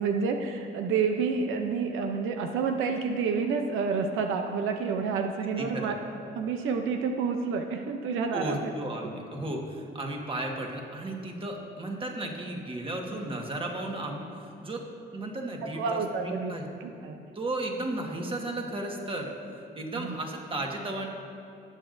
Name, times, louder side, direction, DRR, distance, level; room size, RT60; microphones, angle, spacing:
voice 1, 0.0-6.0 6.3-8.7 15.8-17.2 19.9-20.2, right 5 dB, 90° right, 5 dB, 0.6 m, -29 dB
voice 2, 5.6-6.0 8.3-14.3 14.6-16.6 17.3-19.3 19.8-21.1, right 1 dB, 25° right, 1 dB, 1.5 m, -34 dB
18.0 x 7.2 x 2.6 m, 2.6 s
cardioid pair, 90°, 20 cm